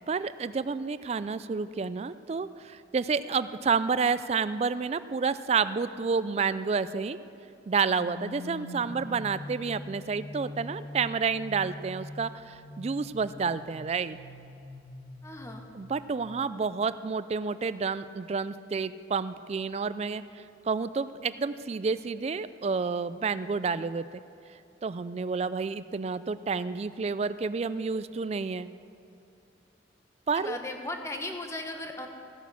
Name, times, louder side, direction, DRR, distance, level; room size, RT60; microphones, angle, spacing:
voice 1, 0.1-7.2 7.7-14.2 15.7-24.0 24.8-28.7 30.3-30.6, right 5 dB, 35° right, 14 dB, 0.3 m, -30 dB
sound 1, 8.0-16.2, left 1 dB, 55° left, 2.3 m, -43 dB
voice 2, 15.2-15.7 30.3-32.1, left 2 dB, 15° left, 4 dB, 1.0 m, -37 dB
14.5 x 9.3 x 6.9 m, 2.7 s
head